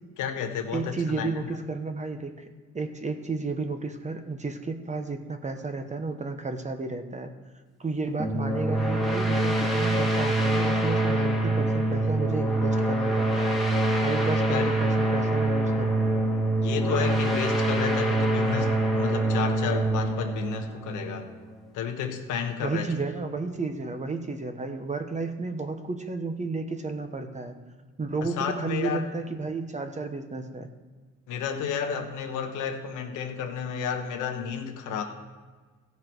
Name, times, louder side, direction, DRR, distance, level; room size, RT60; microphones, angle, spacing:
voice 1, 0.2-1.6 14.5-14.7 16.6-21.3 21.7-22.9 28.2-29.0 31.3-35.0, left 7 dB, 90° left, 4 dB, 1.3 m, -31 dB
voice 2, 0.7-2.5 2.7-7.3 7.8-13.6 14.0-16.3 22.6-27.5 28.0-30.7, right 3 dB, 25° right, 7 dB, 1.1 m, -32 dB
sound 1, 8.2-21.5, right 1 dB, ahead, 1.9 m, -25 dB
15.5 x 5.7 x 4.6 m, 1.4 s
cardioid pair, 90°, 30 cm